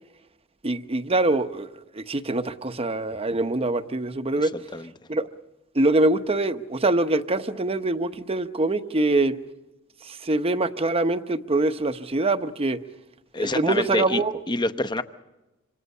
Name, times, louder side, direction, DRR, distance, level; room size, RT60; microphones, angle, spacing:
voice 1, 0.6-1.7 1.9-4.5 5.1-5.3 5.7-9.4 10.0-12.8 13.3-14.3, right 2 dB, 30° right, 0.9 m, -24 dB
voice 2, 4.4-4.9 13.3-14.2 14.5-15.0, left 2 dB, 20° left, 0.9 m, -27 dB
26.5 x 26.5 x 5.5 m
head